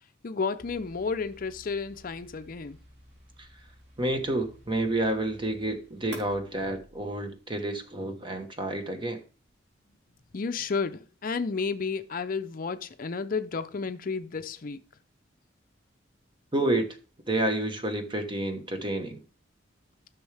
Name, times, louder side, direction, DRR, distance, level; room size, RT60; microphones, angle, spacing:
voice 1, 0.2-2.8 10.3-14.8, left 4 dB, 45° left, 0.5 m, -32 dB
sound 1, 0.6-7.6, equal, 60° right, 3.4 m, -51 dB
voice 2, 4.0-9.2 16.5-16.9 17.3-19.2, right 1 dB, 25° right, 1.2 m, -29 dB
14.0 x 6.3 x 3.4 m
head